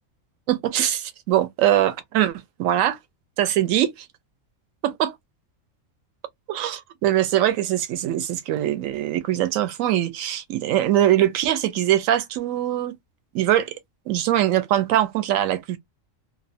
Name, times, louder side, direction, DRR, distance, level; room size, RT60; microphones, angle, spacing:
voice 1, 0.5-3.0 3.4-4.1 4.8-5.1 6.5-13.0 13.3-13.7 14.1-15.8, right 12 dB, 75° right, 1.0 m, -22 dB
2.9 x 2.0 x 2.5 m
omnidirectional pair, 1.4 m